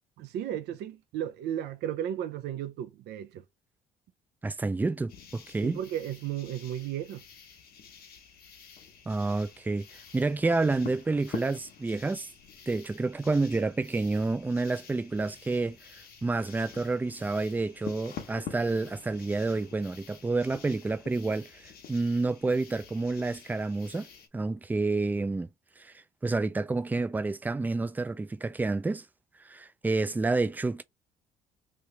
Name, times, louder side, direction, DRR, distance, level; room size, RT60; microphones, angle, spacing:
voice 1, 0.2-3.4 5.6-7.2, right 11 dB, 75° right, 0.6 m, -34 dB
voice 2, 4.4-5.8 9.1-12.3 12.7-24.1 24.3-25.5 25.8-25.9 26.2-29.0 29.4-30.8, right 3 dB, 10° right, 0.4 m, -29 dB
sound 1, 5.1-24.3, left 8 dB, 65° left, 1.0 m, -48 dB
3.2 x 2.8 x 3.3 m
cardioid pair, 110°, 17 cm